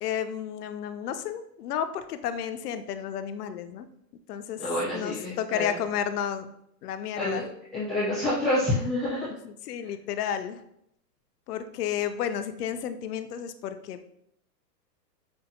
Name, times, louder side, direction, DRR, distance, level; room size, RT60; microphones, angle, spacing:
voice 1, 0.0-3.9 4.3-4.6 4.9-6.5 6.8-7.5 9.4-10.6 11.5-14.0, left 9 dB, 75° left, 9 dB, 0.5 m, -32 dB
voice 2, 4.6-5.8 7.2-7.5 7.7-9.3, left 1 dB, ahead, -12 dB, 0.5 m, -28 dB
5.3 x 2.2 x 2.7 m, 0.74 s
hypercardioid pair, 160°, 48 cm